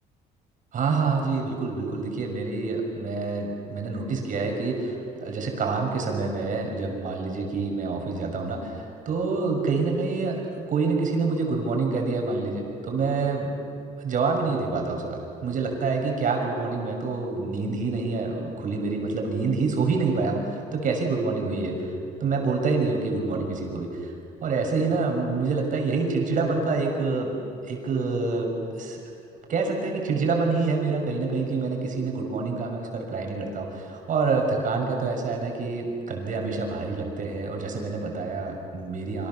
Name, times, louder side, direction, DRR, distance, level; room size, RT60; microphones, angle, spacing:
voice 1, 0.7-13.5 14.0-21.9 22.2-24.1 24.4-27.3 27.7-29.0 29.5-39.3, right 4 dB, 50° right, 2 dB, 6.3 m, -27 dB
27.5 x 25.5 x 7.1 m, 2.4 s
cardioid pair, 110°, 17 cm